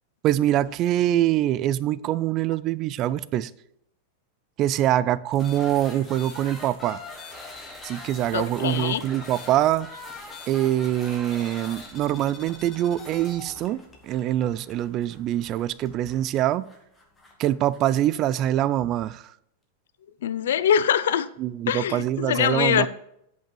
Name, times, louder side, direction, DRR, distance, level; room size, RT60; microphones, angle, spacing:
voice 1, 0.2-3.5 4.6-7.0 7.8-9.9 10.5-16.7 17.4-19.2 21.4-22.9, right 12 dB, 30° right, 0.3 m, -24 dB
sound 1, 5.3-18.5, left 2 dB, 10° left, 1.4 m, -43 dB
voice 2, 8.3-9.0 20.2-21.3 21.7-22.9, left 9 dB, 85° left, 0.5 m, -23 dB
9.0 x 5.5 x 6.8 m
supercardioid pair, 165°, 0 cm